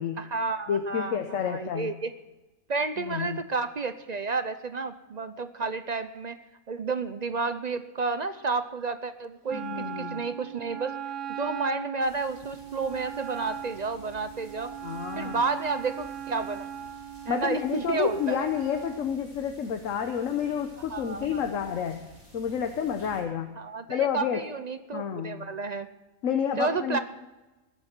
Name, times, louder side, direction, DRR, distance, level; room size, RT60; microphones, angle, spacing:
voice 1, 0.2-2.1 2.7-6.4 6.7-11.0 11.3-14.8 15.2-16.7 17.3-18.5 20.9-21.5 23.6-25.9 26.6-27.0, right 4 dB, 45° right, 11 dB, 0.5 m, -31 dB
voice 2, 0.7-1.9 3.0-3.4 9.5-10.2 14.8-15.4 17.3-22.0 22.3-23.5 23.9-24.4 24.9-25.5 26.2-27.0, left 8 dB, 70° left, 6 dB, 1.3 m, -29 dB
Wind instrument woodwind instrument, 9.5-19.1, right 9 dB, 70° right, 1.2 m, -39 dB
sound 1, 12.0-23.2, right 1 dB, 10° right, 6.5 m, -53 dB
20.0 x 10.5 x 4.5 m, 1.1 s
omnidirectional pair, 1.4 m